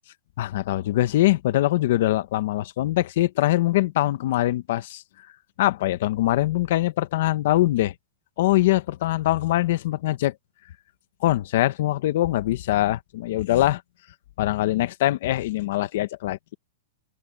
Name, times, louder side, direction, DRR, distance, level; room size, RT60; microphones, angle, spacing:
voice 1, 0.4-5.0 5.6-7.9 8.4-10.3 11.2-13.8 14.4-16.5, left 15 dB, 50° left, 1.0 m, -23 dB
supercardioid pair, 170°, 0 cm